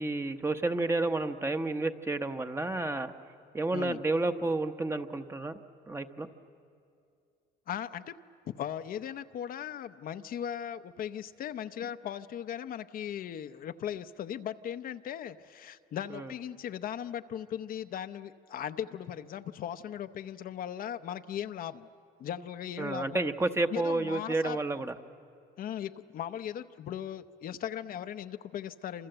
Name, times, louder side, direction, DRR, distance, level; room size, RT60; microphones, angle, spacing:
voice 1, 0.0-3.1 3.5-5.6 5.9-6.3 16.1-16.3 22.8-25.0, right 2 dB, 15° right, 8 dB, 0.9 m, -30 dB
voice 2, 7.7-8.1 8.5-21.9 22.2-23.3 23.7-24.6 25.6-29.1, left 9 dB, 55° left, 10 dB, 0.7 m, -38 dB
27.5 x 27.0 x 7.9 m, 2.4 s
cardioid pair, 110°, 17 cm